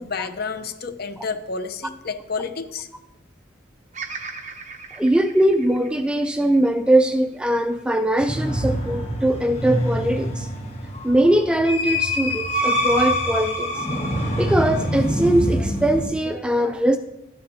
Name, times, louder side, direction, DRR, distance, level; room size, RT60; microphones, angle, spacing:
voice 1, 0.0-2.9, left 4 dB, 50° left, 9 dB, 0.7 m, -30 dB
Bird vocalization bird call bird song, 3.9-8.2 8.7-9.5, right 4 dB, 35° right, 0.8 m, -39 dB
voice 2, 5.0-10.5 11.0-13.9 14.4-17.0, right 1 dB, 5° right, 8 dB, 0.3 m, -21 dB
sound 1, 8.2-16.1, equal, 30° left, 1.5 m, -25 dB
13.0 x 9.4 x 2.8 m, 0.92 s
head